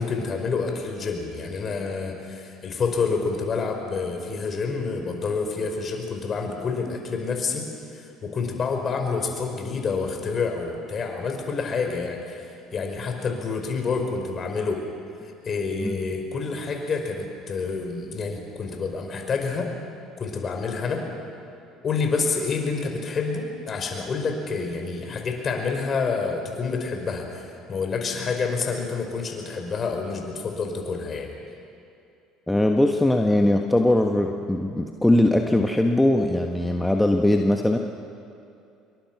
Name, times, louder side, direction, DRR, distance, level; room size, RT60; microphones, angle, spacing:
voice 1, 0.0-14.8 15.2-19.7 20.2-21.0 21.8-31.3, left 4 dB, 40° left, 3 dB, 5.1 m, -28 dB
voice 2, 32.5-37.8, left 1 dB, 10° left, 3 dB, 1.5 m, -20 dB
27.5 x 23.0 x 6.1 m, 2.6 s
hypercardioid pair, 65°, 0 cm